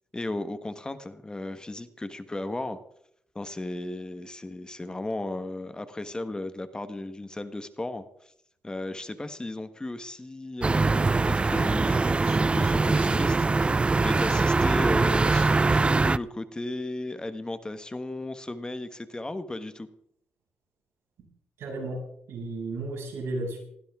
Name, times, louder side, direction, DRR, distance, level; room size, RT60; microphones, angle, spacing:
voice 1, 0.1-2.8 3.3-8.3 8.6-13.7 14.0-19.9, left 2 dB, 20° left, 11 dB, 1.3 m, -35 dB
sound 1, 10.6-16.2, right 3 dB, 25° right, 0.5 m, -22 dB
voice 2, 21.6-23.6, right 2 dB, 85° right, -2 dB, 7.0 m, -34 dB
19.5 x 16.0 x 3.7 m, 0.71 s
cardioid pair, 80°, 4 cm